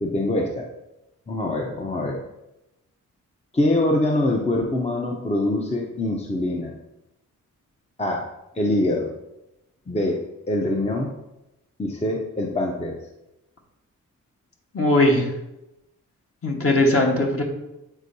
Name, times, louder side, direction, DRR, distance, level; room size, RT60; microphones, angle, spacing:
voice 1, 0.0-0.7 1.3-2.2 3.5-6.7 8.0-8.3 8.5-9.1 9.9-11.1 11.8-13.0, left 1 dB, 20° left, 0 dB, 0.7 m, -24 dB
voice 2, 14.7-15.2 16.4-17.4, left 1 dB, 45° left, 0 dB, 1.4 m, -19 dB
8.1 x 4.4 x 2.7 m, 0.92 s
cardioid pair, 70°, 32 cm